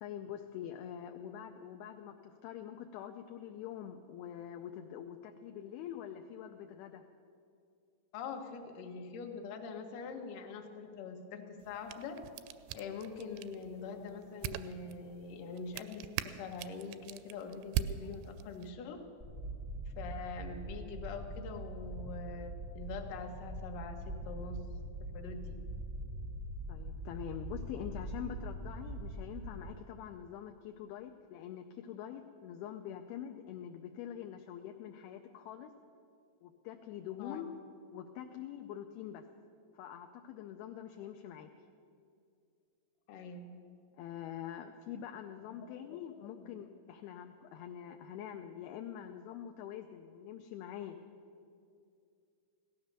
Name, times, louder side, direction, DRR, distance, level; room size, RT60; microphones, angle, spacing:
voice 1, 0.0-7.1 26.7-35.7 36.4-37.5 37.9-39.3 39.7-41.5 43.9-51.0, left 10 dB, 80° left, 5 dB, 2.4 m, -45 dB
voice 2, 8.1-12.2 12.7-19.0 19.9-24.6 25.1-25.6 37.2-37.5 43.1-43.5 45.5-45.7 46.3-46.5, left 4 dB, 65° left, 4 dB, 2.3 m, -44 dB
sound 1, 11.6-18.7, right 11 dB, 80° right, 2.5 m, -42 dB
sound 2, 19.2-29.7, right 1 dB, 30° right, 0.6 m, -43 dB
16.5 x 12.5 x 6.6 m, 2.4 s
omnidirectional pair, 4.9 m